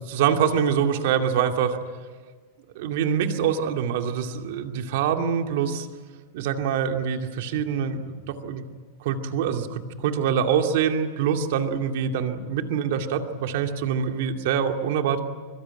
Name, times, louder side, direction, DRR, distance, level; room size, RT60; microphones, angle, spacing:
voice 1, 0.0-1.8 2.7-5.9 6.3-8.6 9.0-15.2, right 7 dB, 60° right, 5 dB, 2.5 m, -25 dB
24.0 x 23.0 x 9.1 m, 1.4 s
supercardioid pair, 170°, 0 cm